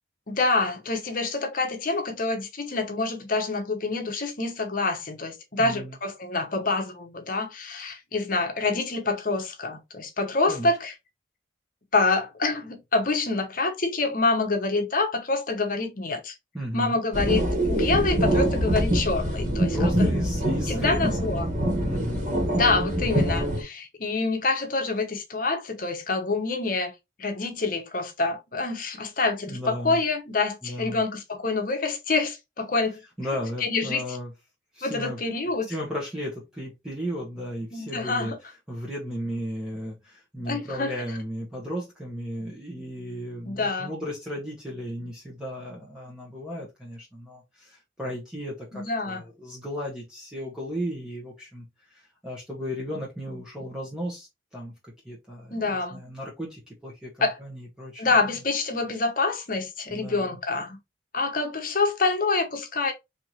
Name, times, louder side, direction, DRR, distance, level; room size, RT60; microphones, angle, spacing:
voice 1, 0.3-10.9 11.9-16.3 16.7-20.1 20.7-21.5 22.5-26.9 27.2-33.0 33.6-34.2 34.8-35.7 37.7-38.4 40.5-41.2 43.4-43.9 48.7-49.2 55.5-56.0 57.2-57.4 58.0-60.8 61.1-62.9, left 3 dB, 50° left, 1.0 m, -26 dB
voice 2, 5.6-5.9 10.5-10.7 16.5-17.0 19.7-21.2 21.9-22.4 29.5-30.0 30.6-31.0 33.2-34.3 34.7-35.2 35.7-38.3 38.7-51.6 51.9-54.7 55.0-58.0 59.9-60.4, equal, 5° right, 1.2 m, -35 dB
sound 1, 17.1-23.6, right 1 dB, 40° right, 1.6 m, -24 dB
4.4 x 2.8 x 3.1 m
head